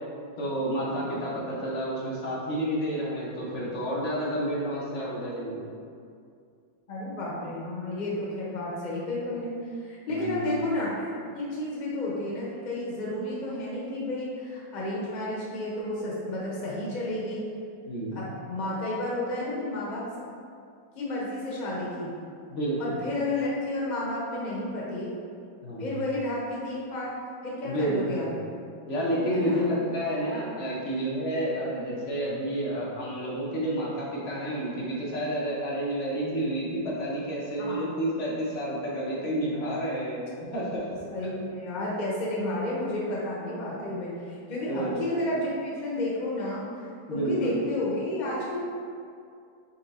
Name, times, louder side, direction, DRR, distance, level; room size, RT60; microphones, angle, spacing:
voice 1, 0.4-5.6 10.1-10.5 17.9-18.2 22.5-23.0 25.6-26.0 27.6-28.3 28.9-40.9 44.7-45.0 47.1-47.6, right 1 dB, 50° left, -6 dB, 0.9 m, -30 dB
voice 2, 6.9-17.4 18.1-20.3 20.9-22.1 22.8-25.1 25.8-27.1 27.4-28.3 29.3-29.7 37.6-38.0 41.0-46.7 47.1-48.6, left 1 dB, 80° left, -5 dB, 0.4 m, -31 dB
4.4 x 3.0 x 4.1 m, 2.3 s
omnidirectional pair, 2.1 m